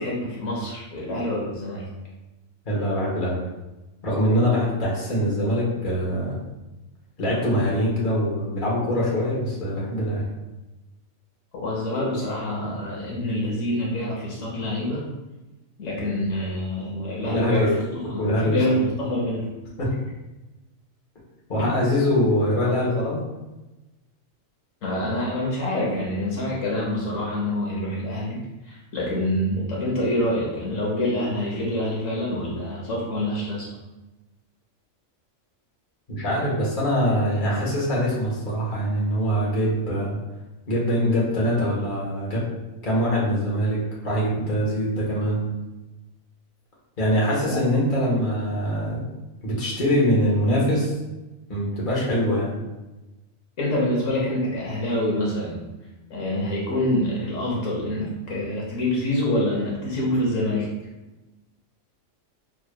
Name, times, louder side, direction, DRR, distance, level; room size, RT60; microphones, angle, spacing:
voice 1, 0.0-1.8 11.5-15.0 15.8-19.5 21.6-21.7 24.8-28.4 28.6-33.7 47.5-47.6 53.6-55.6 56.1-60.7, left 1 dB, 75° left, -4 dB, 1.2 m, -26 dB
voice 2, 2.6-3.4 4.0-6.4 7.2-10.2 16.0-16.2 17.2-17.7 18.2-18.8 19.8-19.9 21.5-23.2 36.1-40.2 40.7-42.4 42.8-45.5 47.0-49.0 49.4-50.9 51.5-52.6, equal, 40° left, -6 dB, 1.3 m, -23 dB
4.7 x 3.1 x 2.2 m, 1.1 s
omnidirectional pair, 1.4 m